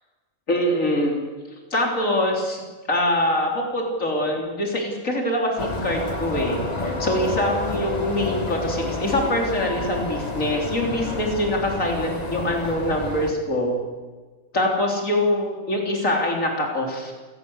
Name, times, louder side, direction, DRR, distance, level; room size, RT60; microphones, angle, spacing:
voice 1, 0.5-1.2 1.7-13.7 14.5-17.1, left 1 dB, 80° left, 1 dB, 4.0 m, -24 dB
sound 1, 5.6-13.3, left 2 dB, 30° left, 2.0 m, -29 dB
28.0 x 15.5 x 8.1 m, 1.4 s
omnidirectional pair, 1.4 m